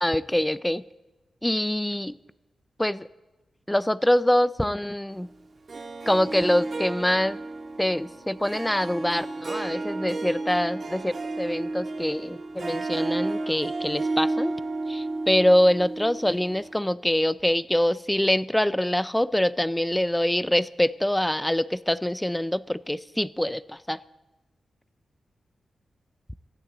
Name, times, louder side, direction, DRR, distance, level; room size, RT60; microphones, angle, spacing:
voice 1, 0.0-0.8 1.4-2.1 2.8-3.1 3.7-5.3 6.1-7.4 7.8-14.6 14.9-24.0, left 1 dB, 5° left, 17 dB, 0.4 m, -24 dB
Harp, 5.7-16.8, right 2 dB, 45° right, 1.6 m, -32 dB
20.5 x 14.0 x 3.9 m, 1.1 s
wide cardioid pair, 125°, 0 cm